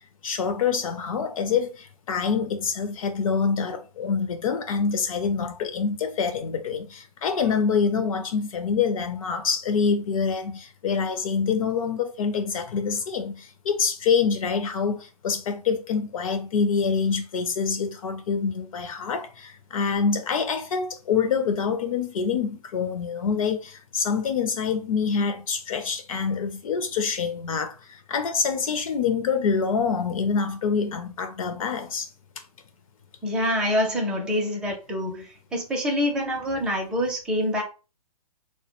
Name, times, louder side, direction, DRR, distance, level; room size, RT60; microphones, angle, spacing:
voice 1, 0.2-32.1, left 6 dB, 55° left, 0.5 m, -26 dB
voice 2, 33.2-37.6, equal, 5° right, 0.4 m, -26 dB
2.1 x 2.1 x 2.9 m
hypercardioid pair, 135°, 21 cm